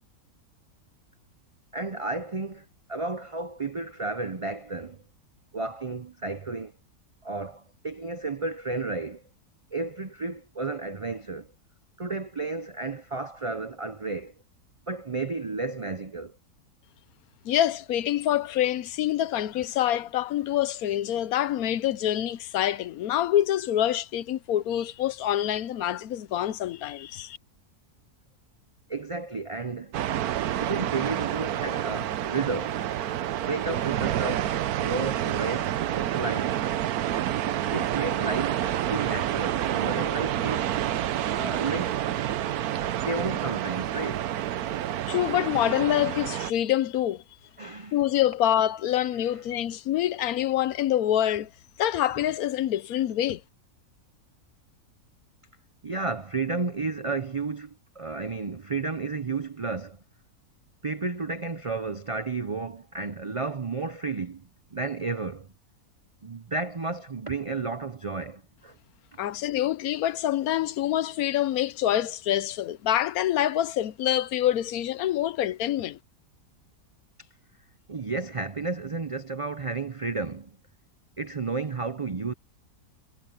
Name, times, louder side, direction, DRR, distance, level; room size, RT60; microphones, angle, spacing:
voice 1, 1.7-5.0 5.5-6.7 7.2-9.2 9.7-11.5 12.0-14.3 14.9-16.4 28.9-29.9 30.6-32.8 33.4-36.6 37.7-38.6 38.9-40.7 41.3-42.1 43.0-44.3 47.6-48.0 49.1-49.3 55.8-60.0 60.8-65.5 66.2-68.8 69.1-69.3 77.2-77.3 77.9-80.6 81.2-82.3, right 3 dB, 50° right, 0.4 m, -32 dB
voice 2, 17.4-27.4 45.1-47.2 47.9-51.5 51.8-53.4 69.2-76.0, left 12 dB, 70° left, 1.1 m, -26 dB
sound 1, 29.9-46.5, right 11 dB, 75° right, 1.2 m, -28 dB
omnidirectional pair, 1.6 m